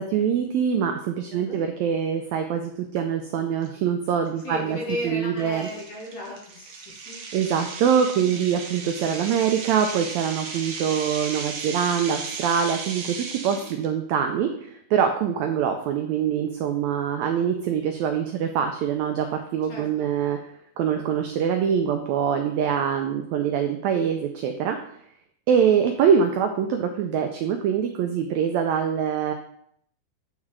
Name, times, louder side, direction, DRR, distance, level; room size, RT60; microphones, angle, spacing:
voice 1, 0.0-4.8 5.0-5.7 7.3-13.0 13.4-14.5 14.9-19.2 19.5-20.4 20.8-24.8 25.5-29.3, right 8 dB, 85° right, 5 dB, 1.5 m, -24 dB
voice 2, 1.3-1.6 4.4-7.2 13.4-13.8 19.7-20.1, left 1 dB, 60° left, -3 dB, 2.0 m, -35 dB
sound 1, 3.6-3.7 4.3-4.5 4.9-5.0 5.5-13.9, right 4 dB, 70° right, 1.9 m, -36 dB
9.0 x 3.6 x 3.2 m, 0.69 s
omnidirectional pair, 3.7 m